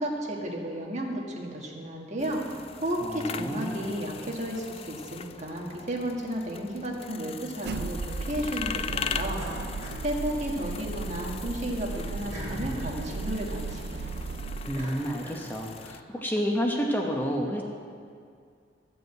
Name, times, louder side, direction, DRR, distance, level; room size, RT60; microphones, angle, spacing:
voice 1, 0.0-2.5 2.8-9.5 10.0-14.1, equal, 40° right, -1 dB, 1.7 m, -33 dB
sound 1, 2.2-16.0, left 7 dB, 35° left, 0.3 m, -40 dB
voice 2, 3.0-3.9 14.6-17.6, equal, 10° left, 0 dB, 0.9 m, -30 dB
sound 2, 7.6-14.7, right 4 dB, 65° right, 0.4 m, -35 dB
sound 3, 9.3-10.9 11.3-15.9, equal, 20° right, 3.0 m, -43 dB
13.0 x 5.5 x 7.7 m, 2.2 s
head